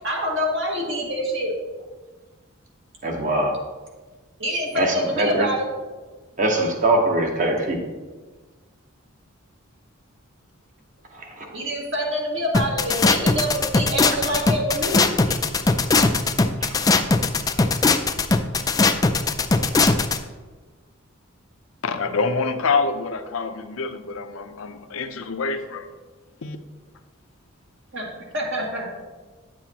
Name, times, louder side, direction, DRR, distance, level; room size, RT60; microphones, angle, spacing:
voice 1, 0.0-1.5 4.4-5.7 11.5-15.0 27.9-28.9, equal, 60° right, -2 dB, 2.1 m, -26 dB
voice 2, 3.0-3.7 4.7-5.5 6.4-7.8 11.1-11.5 15.3-15.4 16.6-16.7, right 1 dB, 40° right, 2 dB, 1.1 m, -23 dB
sound 1, 12.5-20.2, left 3 dB, 15° left, 0.3 m, -19 dB
voice 3, 21.8-25.9 26.4-26.6, left 4 dB, 80° left, 8 dB, 0.6 m, -26 dB
9.6 x 7.5 x 2.9 m, 1.3 s
head